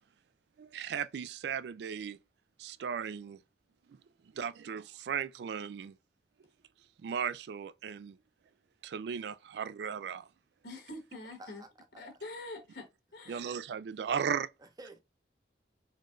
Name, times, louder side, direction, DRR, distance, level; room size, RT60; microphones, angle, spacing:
voice 1, 0.6-2.2 2.6-3.4 3.9-4.0 4.3-5.9 7.0-8.2 8.8-10.3 13.3-14.5, right 7 dB, 70° right, 0.3 m, -36 dB
voice 2, 10.6-11.6 12.0-13.6, left 2 dB, 70° left, 1.2 m, -45 dB
voice 3, 11.4-12.0 13.3-13.4 14.6-15.0, right 2 dB, 20° right, 0.6 m, -52 dB
4.2 x 3.1 x 2.4 m
head